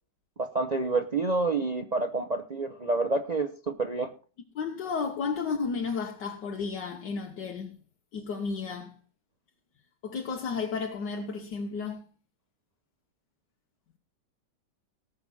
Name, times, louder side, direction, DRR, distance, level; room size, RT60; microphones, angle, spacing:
voice 1, 0.4-3.5 3.8-4.1, right 3 dB, 50° right, 0.5 m, -28 dB
voice 2, 4.6-7.8 8.1-8.9 10.0-12.1, left 5 dB, 75° left, 1.7 m, -33 dB
18.5 x 6.8 x 4.1 m
omnidirectional pair, 1.9 m